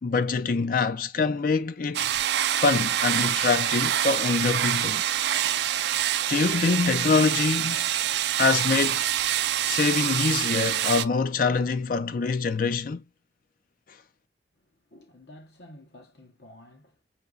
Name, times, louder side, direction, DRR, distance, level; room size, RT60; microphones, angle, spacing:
voice 1, 0.0-2.1 2.5-5.0 6.3-7.9 8.4-9.0 9.6-13.0, left 4 dB, 50° left, 0.4 m, -25 dB
sound 1, 1.9-11.0, right 11 dB, 65° right, 0.3 m, -26 dB
voice 2, 14.6-17.0, left 1 dB, 70° left, 1.0 m, -51 dB
6.5 x 2.9 x 2.3 m
head